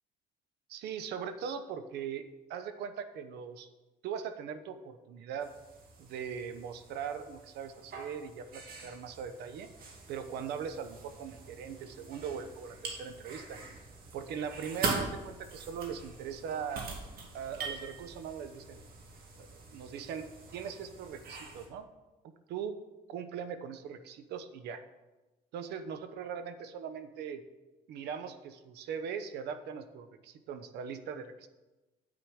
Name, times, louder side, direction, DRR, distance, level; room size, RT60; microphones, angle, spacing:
voice 1, 0.7-2.2 2.5-3.7 4.0-5.5 6.0-9.7 10.1-13.6 14.1-16.9 17.3-18.8 19.3-20.3 20.5-21.9 22.2-22.8 23.1-24.8 25.5-27.4 27.9-31.5, right 7 dB, 80° right, 10 dB, 0.9 m, -40 dB
sound 1, 5.4-21.7, right 3 dB, 60° right, 2.3 m, -43 dB
9.6 x 8.6 x 4.8 m, 1.1 s
cardioid pair, 110°, 17 cm